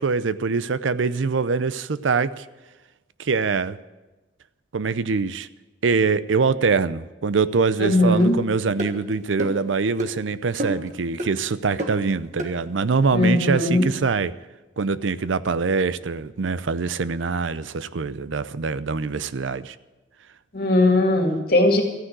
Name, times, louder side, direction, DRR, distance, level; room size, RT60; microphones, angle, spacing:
voice 1, 0.0-2.4 3.2-3.8 4.7-5.5 5.8-14.3 14.8-19.8, right 4 dB, 85° right, 15 dB, 0.6 m, -24 dB
voice 2, 7.8-8.4 13.1-13.9 20.5-21.8, left 1 dB, 50° left, 2 dB, 2.3 m, -19 dB
sound 1, 8.2-8.3 8.8-8.9 9.4-9.6 10.0-10.1 10.6-10.9 11.2-11.3 11.8-12.0 12.4-12.5, right 1 dB, 40° right, 1.6 m, -29 dB
14.0 x 9.8 x 8.0 m, 1.1 s
head